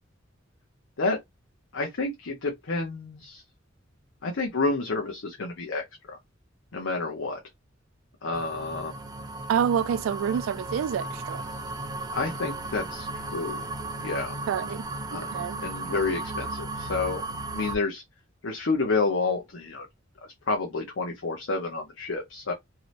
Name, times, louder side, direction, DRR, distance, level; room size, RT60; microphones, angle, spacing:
voice 1, 1.7-3.4 4.2-6.2 6.7-7.4 8.2-8.9 12.1-13.6 14.0-14.3 15.1-15.3 15.6-17.2 17.5-18.0 18.4-19.9 20.5-22.5, left 3 dB, 75° left, 0.7 m, -29 dB
sound 1, 8.3-17.8, right 2 dB, 20° right, 0.5 m, -35 dB
voice 2, 9.5-11.4 14.5-14.8 15.1-15.6, right 8 dB, 85° right, 0.3 m, -27 dB
3.1 x 2.8 x 2.5 m
head